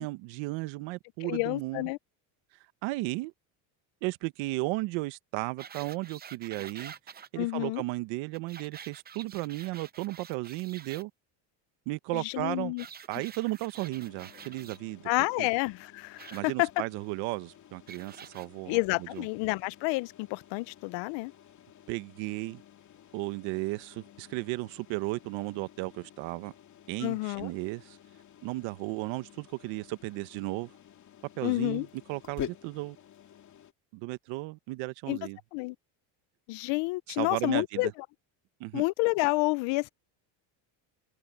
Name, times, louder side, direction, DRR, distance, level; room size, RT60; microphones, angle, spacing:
voice 1, 0.0-1.9 2.8-3.3 4.0-6.9 7.3-11.1 11.9-12.7 13.1-15.1 15.4-15.5 16.3-19.3 21.9-22.6 23.1-26.5 26.9-28.0 28.4-30.7 31.4-33.0 33.9-35.4 37.1-37.9 38.6-38.8, right 21 dB, 75° right, 1.2 m, -35 dB
voice 2, 1.2-2.0 7.4-7.8 12.1-12.8 15.1-16.8 18.7-21.3 27.0-27.5 31.4-31.9 35.1-35.2 35.5-35.8 36.5-37.9 38.7-39.9, left 25 dB, 65° left, 0.7 m, -29 dB
sound 1, 5.6-7.3 8.3-11.0 12.8-14.8 16.2-16.4 17.9-18.5 19.1-19.2, right 7 dB, 20° right, 0.7 m, -48 dB
sound 2, 13.8-33.7, left 9 dB, 40° left, 2.6 m, -49 dB
cardioid pair, 140°, 46 cm